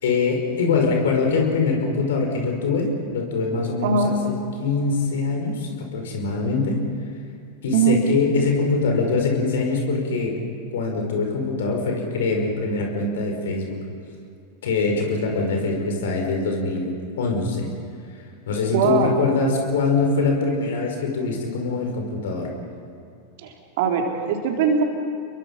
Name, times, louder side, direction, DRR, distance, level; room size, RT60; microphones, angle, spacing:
voice 1, 0.0-6.8 7.6-10.4 10.7-13.7 14.6-17.7 18.5-22.5, left 4 dB, 65° left, 2 dB, 5.3 m, -23 dB
voice 2, 18.7-19.2 23.4-24.8, right 6 dB, 60° right, 2 dB, 3.6 m, -21 dB
30.0 x 22.5 x 5.5 m, 2.4 s
figure-of-eight pair, 90°, 0 cm